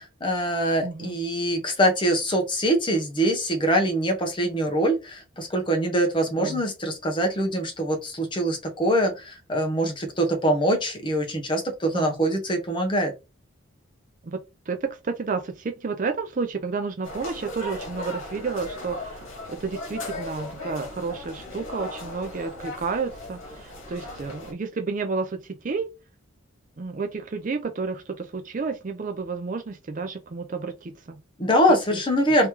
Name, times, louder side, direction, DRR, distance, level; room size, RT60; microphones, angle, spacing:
voice 1, 0.0-13.1 31.4-32.5, equal, 25° left, 0.8 m, -24 dB
voice 2, 0.8-1.1 6.4-6.6 11.9-12.1 14.2-19.2 19.5-25.9 26.8-31.2 31.7-32.0, right 4 dB, 40° right, 0.4 m, -31 dB
sound 1, 17.0-24.5, left 2 dB, 70° left, 1.3 m, -37 dB
3.0 x 2.8 x 3.6 m
head